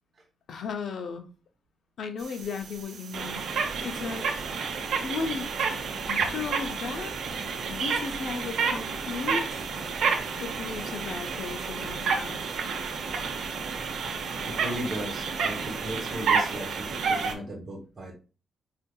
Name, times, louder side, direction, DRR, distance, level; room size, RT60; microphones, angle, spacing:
voice 1, 0.5-1.3 2.0-4.3 5.0-5.7 6.1-7.1 7.7-9.6 10.4-12.4, left 5 dB, 70° left, 7 dB, 0.6 m, -35 dB
sound 1, 2.2-17.3, right 5 dB, 85° right, 0.8 m, -30 dB
voice 2, 14.2-18.1, right 1 dB, 45° right, -2 dB, 1.2 m, -36 dB
5.1 x 2.7 x 2.3 m, 0.33 s
cardioid pair, 110°, 0 cm